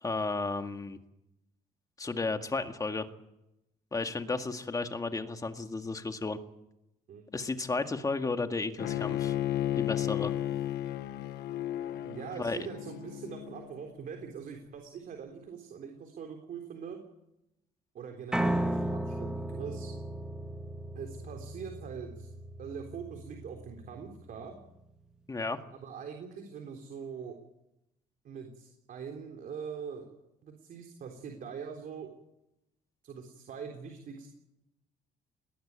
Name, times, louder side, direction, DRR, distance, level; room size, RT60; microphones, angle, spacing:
voice 1, 0.0-1.0 2.0-3.1 3.9-6.4 7.3-9.3 9.8-10.3 12.4-12.6 25.3-25.6, left 3 dB, 20° left, 6 dB, 2.0 m, -33 dB
Bowed string instrument, 8.8-13.9, left 12 dB, 75° left, 1.4 m, -34 dB
voice 2, 12.0-17.0 17.9-19.9 20.9-22.3 22.6-24.5 25.7-27.4 28.2-30.1 30.4-32.1 33.0-34.3, right 6 dB, 55° right, 3 dB, 3.7 m, -43 dB
Piano, 18.3-24.5, right 1 dB, 5° right, 1.9 m, -35 dB
20.5 x 20.0 x 8.9 m, 0.87 s
cardioid pair, 110°, 17 cm